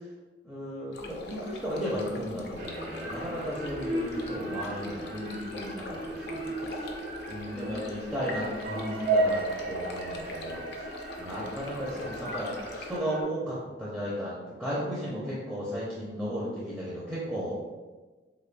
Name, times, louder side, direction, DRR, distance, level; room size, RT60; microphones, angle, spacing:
voice 1, 0.4-6.9 7.3-10.9 11.2-17.6, equal, 10° right, -8 dB, 0.6 m, -35 dB
sound 1, 0.9-13.0, left 2 dB, 65° left, 0.5 m, -42 dB
sound 2, 2.6-13.2, right 2 dB, 55° right, 0.5 m, -34 dB
4.0 x 3.0 x 2.2 m, 1.3 s
head